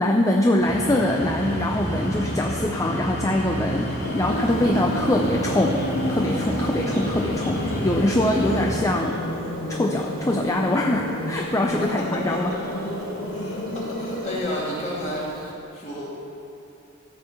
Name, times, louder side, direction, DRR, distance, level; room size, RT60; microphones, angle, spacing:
voice 1, 0.0-9.2 9.7-12.5, left 1 dB, 15° left, 1 dB, 0.4 m, -23 dB
sound 1, 0.6-8.8, equal, 50° left, 2.7 m, -30 dB
Bird vocalization bird call bird song, 3.5-15.5, right 1 dB, 45° right, 1.4 m, -43 dB
sound 2, 4.0-14.4, left 1 dB, 85° left, 1.3 m, -31 dB
voice 2, 4.6-5.2 11.8-15.4 15.7-16.1, left 1 dB, 35° left, -6 dB, 2.4 m, -32 dB
13.5 x 5.6 x 6.6 m, 2.8 s
head